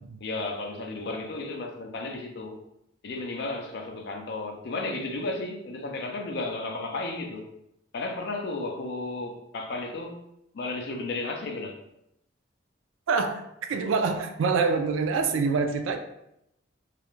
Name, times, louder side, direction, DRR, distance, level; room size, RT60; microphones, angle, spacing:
voice 1, 0.2-2.6 3.0-7.5 7.9-10.2 10.5-11.8, left 2 dB, 55° left, 0.4 m, -33 dB
voice 2, 13.1-13.4 13.7-16.0, right 4 dB, 80° right, 0.3 m, -25 dB
2.4 x 2.1 x 3.0 m
head